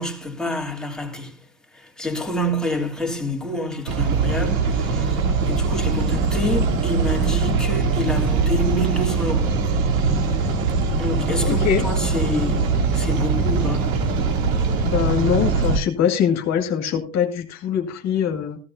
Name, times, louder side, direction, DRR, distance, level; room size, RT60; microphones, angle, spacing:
voice 1, 0.0-1.4 1.7-9.6 11.0-13.9, equal, ahead, 3.0 m, -27 dB
sound 1, 3.9-15.8, right 4 dB, 80° right, 2.9 m, -21 dB
voice 2, 11.4-11.8 14.8-18.6, left 8 dB, 40° left, 2.4 m, -22 dB
15.5 x 13.5 x 2.7 m
supercardioid pair, 120°, 39 cm